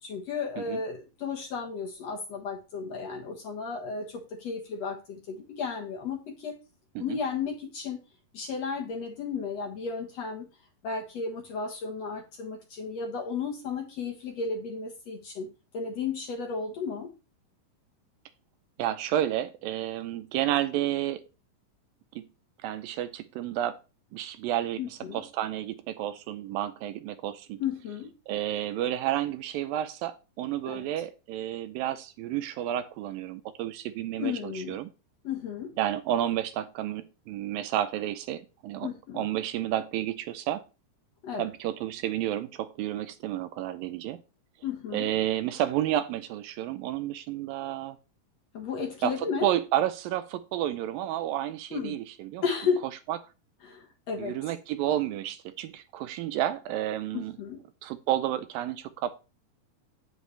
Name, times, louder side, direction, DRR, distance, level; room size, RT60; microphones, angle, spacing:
voice 1, 0.0-6.6 7.0-8.0 8.3-10.5 10.8-15.5 15.7-17.1 24.8-25.2 27.6-28.1 30.7-30.9 34.2-34.8 35.2-35.7 38.8-39.2 41.2-41.5 44.6-45.1 48.5-49.5 51.7-52.0 52.4-52.8 53.6-54.4 57.1-57.6, left 5 dB, 60° left, 1.9 m, -33 dB
voice 2, 18.8-21.2 22.2-22.3 22.6-23.8 24.1-27.6 28.3-34.9 35.8-38.9 39.1-40.6 41.4-44.2 44.9-48.0 49.0-49.1 49.4-52.5 53.1-53.2 54.2-57.4 57.8-59.1, right 12 dB, 80° right, 2.3 m, -31 dB
9.4 x 8.0 x 3.2 m
omnidirectional pair, 4.3 m